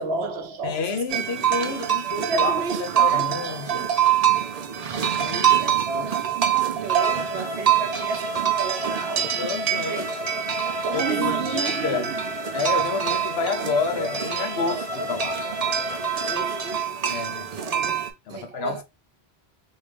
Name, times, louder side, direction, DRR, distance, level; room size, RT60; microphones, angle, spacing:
voice 1, 0.0-1.2 2.2-3.9 5.5-10.4 10.8-12.4 12.9-13.0 16.1-17.2 17.5-18.8, right 4 dB, 80° right, 1.0 m, -33 dB
voice 2, 0.6-2.5 2.8-3.9 5.2-6.1 9.4-10.1 10.9-12.1 12.5-15.4 17.1-17.5 18.3-18.8, left 5 dB, 80° left, 0.9 m, -29 dB
sound 1, 1.1-18.1, right 10 dB, 50° right, 0.5 m, -25 dB
Bowed string instrument, 6.8-16.9, equal, 15° right, 1.0 m, -33 dB
3.3 x 2.7 x 3.2 m
omnidirectional pair, 1.1 m